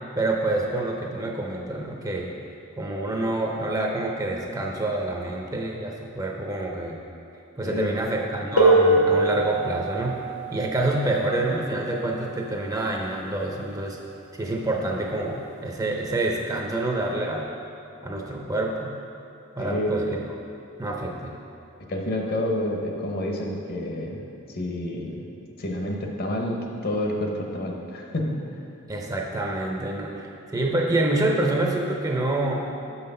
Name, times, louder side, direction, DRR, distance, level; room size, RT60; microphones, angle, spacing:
voice 1, 0.2-2.3 2.8-7.0 7.6-10.2 10.5-14.0 14.3-17.5 18.0-18.9 19.6-20.0 20.8-21.3 28.9-32.7, right 2 dB, 15° right, 0 dB, 0.6 m, -27 dB
sound 1, 8.6-14.0 15.1-15.2 16.0-16.2, right 2 dB, 85° left, 1.0 m, -24 dB
voice 2, 19.6-20.0 21.9-24.2 24.5-25.3 25.6-28.3, left 1 dB, 45° left, 1 dB, 0.9 m, -28 dB
6.3 x 5.7 x 5.4 m, 2.6 s
head